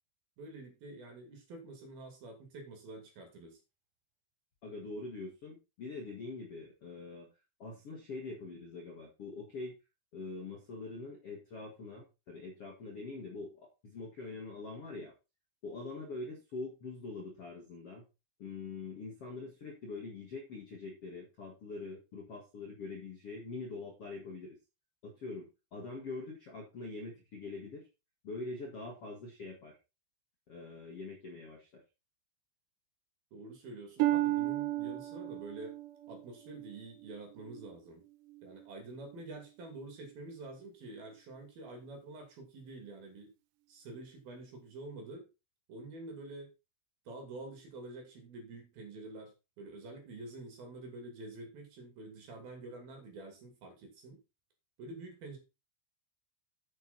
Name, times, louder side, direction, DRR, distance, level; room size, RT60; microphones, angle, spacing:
voice 1, 0.4-3.6 33.3-35.8 36.1-38.0 38.4-43.3 43.7-45.3 45.7-46.5 47.1-54.2 54.8-55.4, right 2 dB, 50° right, 3 dB, 4.0 m, -47 dB
voice 2, 4.6-7.3 7.6-9.7 10.1-15.1 15.6-18.0 18.4-24.6 25.0-27.9 28.2-29.8 30.5-31.8, left 3 dB, 80° left, 0 dB, 1.3 m, -44 dB
Harp, 34.0-37.7 38.3-38.7 39.3-39.4, right 16 dB, 85° right, 2.5 m, -34 dB
9.3 x 7.9 x 4.2 m, 0.28 s
omnidirectional pair, 6.0 m